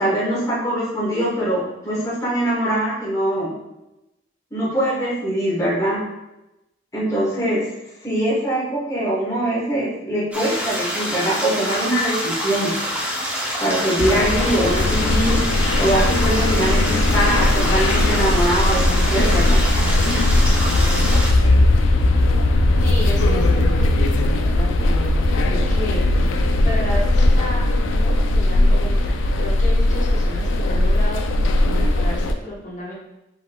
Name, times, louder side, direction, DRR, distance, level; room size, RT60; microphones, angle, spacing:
voice 1, 0.0-3.5 4.5-6.0 6.9-7.6 8.0-12.7 13.6-15.4 15.8-19.6, right 1 dB, 15° left, -6 dB, 1.3 m, -22 dB
sound 1, 10.3-21.3, equal, 10° right, 0.8 m, -26 dB
sound 2, 14.0-32.3, left 1 dB, 85° left, 0.4 m, -18 dB
voice 2, 22.8-26.2 26.6-27.6 27.9-32.9, equal, 40° left, -4 dB, 1.1 m, -32 dB
5.3 x 3.9 x 2.3 m, 0.94 s
head